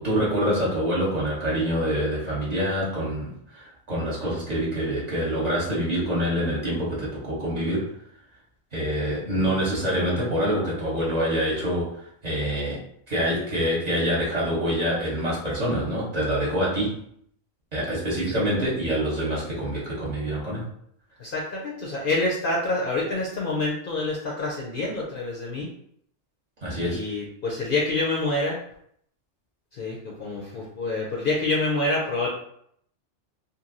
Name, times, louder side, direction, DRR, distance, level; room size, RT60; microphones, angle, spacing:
voice 1, 0.0-7.9 8.7-11.9 12.2-12.8 13.1-17.0 17.7-20.6 26.6-27.0, equal, 35° right, -6 dB, 1.0 m, -26 dB
voice 2, 21.2-25.7 26.8-28.6 29.7-32.3, left 2 dB, 55° left, -3 dB, 0.7 m, -27 dB
2.9 x 2.6 x 2.6 m, 0.68 s
omnidirectional pair, 1.2 m